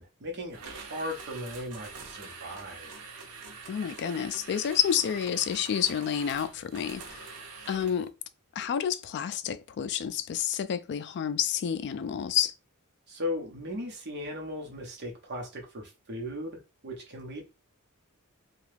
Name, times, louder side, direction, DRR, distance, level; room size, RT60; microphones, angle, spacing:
voice 1, 0.0-2.9 13.1-17.4, left 1 dB, 50° right, 0.9 m, -37 dB
sound 1, 0.5-8.1, right 4 dB, 85° right, 0.7 m, -45 dB
voice 2, 3.7-8.1 8.6-12.5, left 9 dB, 50° left, 0.3 m, -29 dB
2.8 x 2.3 x 3.3 m
head